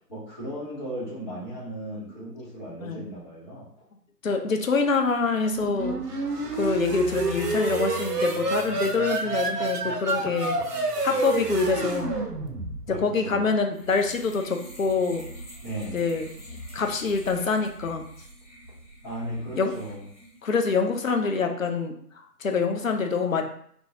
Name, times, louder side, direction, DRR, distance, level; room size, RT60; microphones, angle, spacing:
voice 1, 0.1-3.7 12.9-13.5 15.6-16.0 19.0-20.0, right 1 dB, 15° left, -12 dB, 0.9 m, -36 dB
voice 2, 4.2-6.0 6.5-10.6 11.0-12.1 12.9-15.2 15.9-16.3 16.7-18.0 19.6-19.7 20.4-23.4, left 4 dB, 55° left, 4 dB, 0.5 m, -25 dB
sound 1, 5.5-13.1, right 2 dB, 75° right, 0.7 m, -28 dB
sound 2, 13.7-20.4, right 1 dB, 15° right, 0.8 m, -44 dB
3.3 x 2.2 x 2.7 m, 0.64 s
figure-of-eight pair, 145°, 48 cm